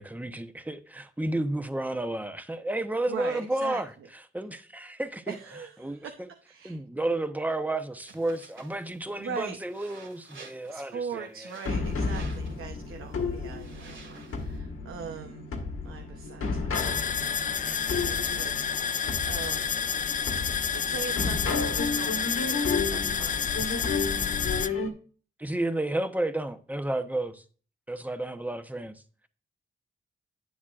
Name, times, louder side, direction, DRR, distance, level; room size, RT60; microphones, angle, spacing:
voice 1, 0.0-3.9 4.3-5.3 5.8-6.3 6.6-11.3 25.4-27.4 27.9-29.0, right 1 dB, 10° right, 0.8 m, -31 dB
voice 2, 3.1-3.8 5.3-6.8 9.2-9.6 10.7-15.5 15.8-19.8 20.7-23.7, right 6 dB, 85° right, 0.8 m, -41 dB
sound 1, 8.1-14.6, right 4 dB, 70° right, 2.3 m, -52 dB
sound 2, 11.7-24.9, left 4 dB, 85° left, 1.5 m, -32 dB
sound 3, 16.7-24.7, left 7 dB, 40° left, 0.4 m, -29 dB
9.9 x 7.2 x 2.4 m
cardioid pair, 85°, 21 cm